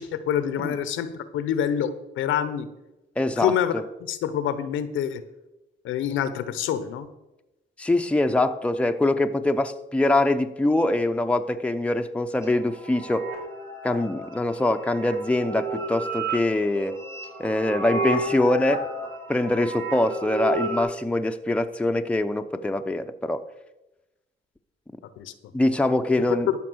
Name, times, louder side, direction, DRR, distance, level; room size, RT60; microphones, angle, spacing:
voice 1, 0.0-2.7 3.4-3.7 4.1-5.2 5.8-7.1 25.2-25.3, left 9 dB, 85° left, 13 dB, 0.9 m, -26 dB
voice 2, 3.2-3.8 7.8-13.3 13.8-17.0 17.4-18.9 19.3-23.4 25.5-26.5, left 2 dB, 5° left, 6 dB, 0.7 m, -24 dB
sound 1, 12.4-20.8, right 2 dB, 85° right, 4.9 m, -32 dB
13.5 x 5.9 x 6.3 m, 0.99 s
cardioid pair, 90°, 20 cm